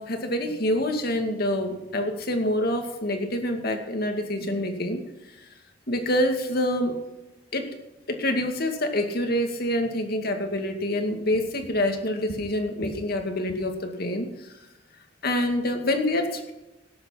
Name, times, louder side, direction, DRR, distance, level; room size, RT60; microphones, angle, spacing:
voice 1, 0.0-5.0 5.9-6.9 7.5-7.7 8.1-14.5 15.2-16.5, left 1 dB, 55° left, 5 dB, 2.2 m, -26 dB
18.5 x 7.9 x 5.7 m, 1.0 s
head